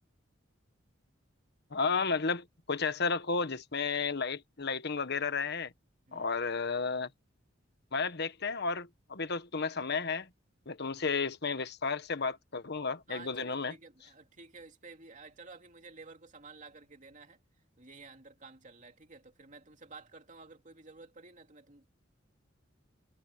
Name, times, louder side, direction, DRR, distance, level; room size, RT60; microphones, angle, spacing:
voice 1, 1.7-5.7 6.1-7.1 7.9-10.3 10.7-13.7, left 4 dB, 60° left, 1.3 m, -32 dB
voice 2, 13.1-17.4 17.8-21.9, right 3 dB, 40° right, 2.8 m, -52 dB
head